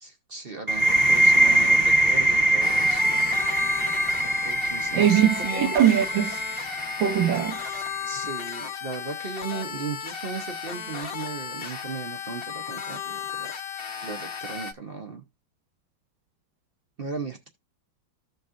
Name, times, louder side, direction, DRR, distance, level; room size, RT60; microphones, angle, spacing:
voice 1, 0.0-3.2 4.2-5.7 7.6-13.5 14.0-15.2 17.0-17.5, right 4 dB, 60° right, 0.5 m, -36 dB
sound 1, 0.7-8.2, right 1 dB, 15° right, 0.8 m, -23 dB
sound 2, 2.6-14.7, left 8 dB, 40° left, 0.9 m, -35 dB
voice 2, 4.9-6.4 7.0-7.6, right 10 dB, 85° right, 1.5 m, -21 dB
15.0 x 5.2 x 2.5 m
omnidirectional pair, 2.0 m